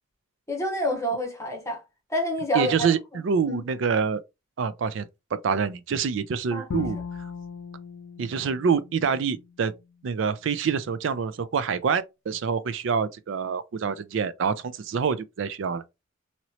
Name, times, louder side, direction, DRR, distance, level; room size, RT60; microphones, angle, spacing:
voice 1, 0.5-1.8 2.1-2.9 3.5-3.7 6.5-6.9, equal, 15° left, 1.0 m, -28 dB
voice 2, 2.5-4.2 4.6-7.0 8.2-9.7 10.0-15.8, right 6 dB, 65° right, 0.4 m, -26 dB
Bowed string instrument, 6.7-9.8, left 6 dB, 85° left, 0.4 m, -38 dB
3.0 x 2.8 x 2.8 m
head